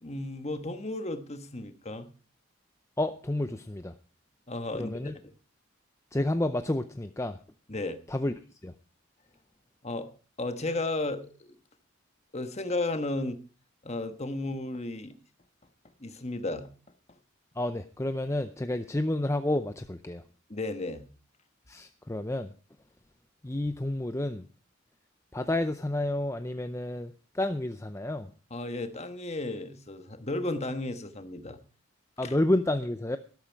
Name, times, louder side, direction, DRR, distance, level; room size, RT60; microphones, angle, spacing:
voice 1, 0.0-2.1 4.5-5.0 5.2-5.3 7.7-8.0 9.8-10.1 10.4-11.5 12.3-13.4 13.8-15.1 16.0-16.7 20.5-21.1 28.5-31.6 32.2-32.4, left 2 dB, 30° left, 8 dB, 1.3 m, -34 dB
voice 2, 3.0-3.9 4.7-5.1 6.1-7.4 8.1-8.3 8.6-8.7 17.6-20.2 21.7-22.5 23.4-24.4 25.3-28.3 32.2-33.2, left 1 dB, 15° left, 9 dB, 0.5 m, -30 dB
13.0 x 12.5 x 4.6 m, 0.38 s
head